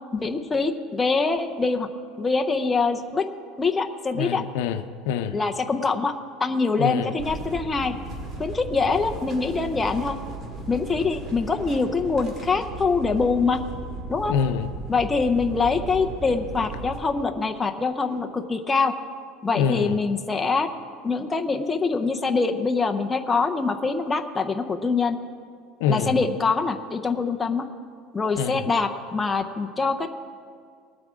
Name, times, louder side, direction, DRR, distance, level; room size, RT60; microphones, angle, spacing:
voice 1, 0.1-1.9 2.2-3.3 3.6-4.4 5.3-6.1 6.4-7.9 8.4-10.2 10.7-13.6 14.1-14.3 14.9-18.9 19.4-20.7 21.0-25.2 25.9-27.7 28.1-30.1, left 4 dB, 10° left, 4 dB, 0.6 m, -24 dB
voice 2, 4.2-5.4 6.8-7.1 14.3-14.7 19.5-20.0 25.8-26.2 28.4-28.6, left 7 dB, 80° left, 9 dB, 0.6 m, -25 dB
sound 1, 7.2-17.0, right 2 dB, 35° right, 2.1 m, -36 dB
20.0 x 8.7 x 3.6 m, 2.1 s
cardioid pair, 160°, 0 cm